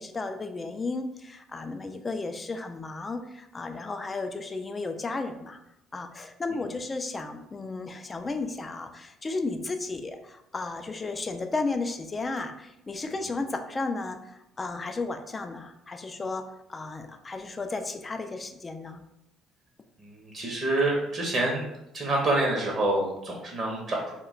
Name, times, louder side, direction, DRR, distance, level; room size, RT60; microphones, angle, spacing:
voice 1, 0.0-5.6 5.9-16.4 16.7-19.0, left 3 dB, 25° left, 7 dB, 0.3 m, -34 dB
voice 2, 20.0-21.7 21.9-24.1, right 2 dB, 45° right, -1 dB, 0.7 m, -27 dB
2.1 x 2.1 x 3.7 m, 0.85 s
supercardioid pair, 85°, 0 cm